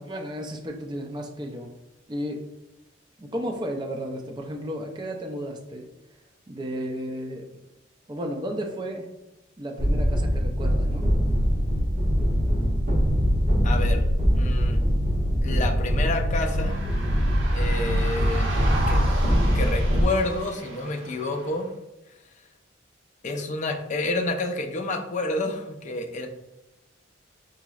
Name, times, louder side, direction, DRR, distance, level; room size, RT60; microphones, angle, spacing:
voice 1, 0.0-1.7 2.1-2.4 3.2-5.9 6.5-7.4 8.1-9.1 9.6-11.1, equal, 25° right, 2 dB, 0.4 m, -33 dB
sound 1, 9.8-20.0, equal, 45° right, 1.4 m, -22 dB
voice 2, 13.6-14.0 14.3-14.8 15.4-16.8 17.5-18.5 18.9-21.7 23.2-26.3, left 2 dB, 40° left, 3 dB, 0.5 m, -29 dB
sound 2, 16.4-21.6, right 2 dB, 85° right, 0.8 m, -35 dB
4.0 x 2.9 x 2.3 m, 0.98 s
head